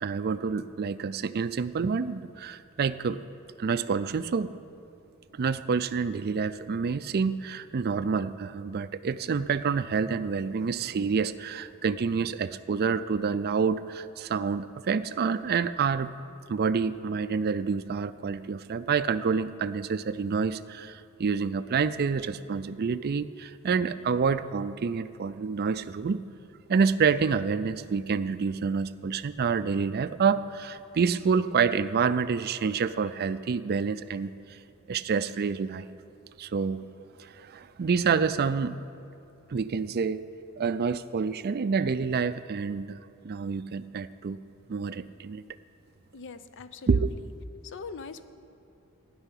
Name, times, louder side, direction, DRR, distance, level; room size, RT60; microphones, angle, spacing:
voice 1, 0.0-3.2 3.6-4.5 5.3-16.1 16.5-26.2 26.7-34.6 34.9-36.0 36.4-36.9 37.2-38.8 39.5-40.3 40.6-43.0 43.2-44.4 44.7-45.4 46.9-47.1, right 5 dB, 45° right, 13 dB, 0.4 m, -28 dB
voice 2, 46.1-47.0 47.6-48.2, left 4 dB, 55° left, 12 dB, 0.6 m, -41 dB
16.0 x 5.6 x 9.9 m, 2.6 s
head